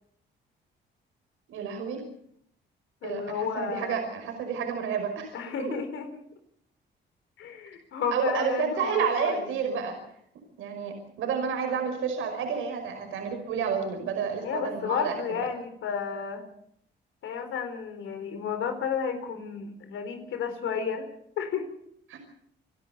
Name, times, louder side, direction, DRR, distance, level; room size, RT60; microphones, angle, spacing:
voice 1, 1.5-2.0 3.0-5.7 8.1-10.0 10.6-15.2 22.1-22.2, right 6 dB, 90° right, 4 dB, 5.4 m, -30 dB
voice 2, 3.0-4.0 5.3-6.1 7.4-9.4 14.4-16.5 17.2-21.1 21.4-21.7, left 7 dB, 80° left, 7 dB, 4.3 m, -32 dB
28.5 x 11.5 x 8.2 m, 0.69 s
cardioid pair, 90°, 20 cm